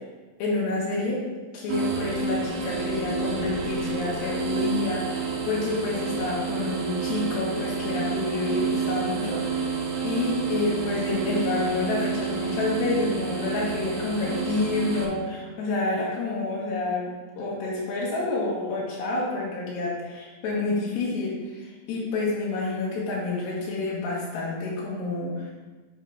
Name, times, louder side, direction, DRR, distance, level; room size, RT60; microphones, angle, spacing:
voice 1, 0.4-1.2 1.5-9.6 10.0-17.1 17.4-25.5, left 3 dB, 90° left, -7 dB, 3.8 m, -28 dB
sound 1, 1.7-15.1, right 4 dB, 75° right, 3.0 m, -29 dB
8.7 x 6.2 x 3.6 m, 1.3 s
omnidirectional pair, 4.7 m